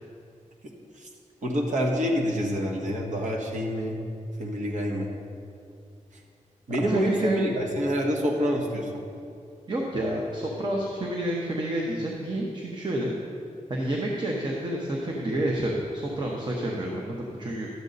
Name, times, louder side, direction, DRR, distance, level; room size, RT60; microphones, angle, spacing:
voice 1, 1.4-4.0 4.4-5.1 6.7-9.0, equal, 75° right, 0 dB, 1.5 m, -27 dB
voice 2, 6.9-7.4 9.7-13.1 13.7-17.7, right 1 dB, 35° right, -2 dB, 0.9 m, -29 dB
12.0 x 8.0 x 4.0 m, 2.4 s
wide cardioid pair, 165°, 13 cm